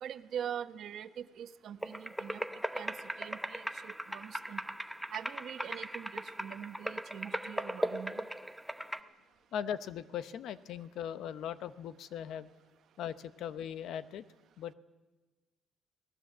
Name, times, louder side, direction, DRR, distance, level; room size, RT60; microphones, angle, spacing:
voice 1, 0.0-2.4 2.7-4.6 5.1-8.2, right 9 dB, 55° right, 11 dB, 0.9 m, -43 dB
sound 1, 1.8-9.0, equal, ahead, 0.7 m, -38 dB
voice 2, 9.5-12.5 13.0-14.2 14.6-14.7, left 9 dB, 65° left, 13 dB, 0.8 m, -39 dB
24.0 x 19.0 x 7.4 m, 1.2 s
cardioid pair, 180°, 0 cm